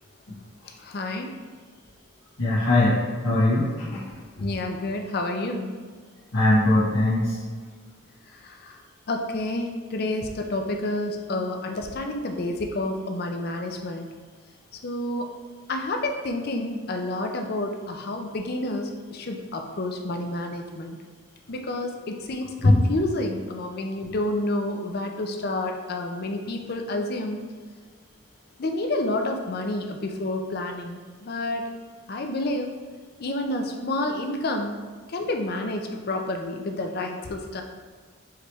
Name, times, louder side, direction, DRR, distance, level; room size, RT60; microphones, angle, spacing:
voice 1, 0.8-1.3 4.4-5.7 8.3-8.8 9.1-14.1 14.8-15.3 15.7-21.0 21.5-27.4 28.6-31.6 32.1-32.7 33.2-34.8 35.1-37.6, left 2 dB, 45° left, 4 dB, 0.5 m, -29 dB
voice 2, 2.4-4.0 4.4-4.5 6.3-7.4 22.6-22.7, left 2 dB, 75° left, -11 dB, 1.2 m, -21 dB
4.7 x 3.4 x 3.1 m, 1.5 s
head